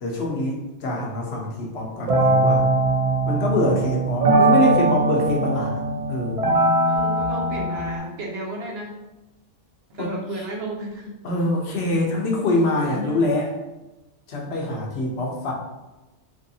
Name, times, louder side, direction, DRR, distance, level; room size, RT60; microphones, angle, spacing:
voice 1, 0.0-2.6 3.3-6.4 10.0-10.1 11.2-13.5 14.3-15.5, left 2 dB, 65° left, -1 dB, 0.8 m, -24 dB
sound 1, 2.1-8.0, right 2 dB, 50° right, 0.4 m, -20 dB
voice 2, 6.8-8.9 9.9-11.1 12.9-13.2, right 2 dB, 65° right, -1 dB, 0.8 m, -33 dB
3.0 x 2.6 x 2.6 m, 1.0 s
omnidirectional pair, 1.2 m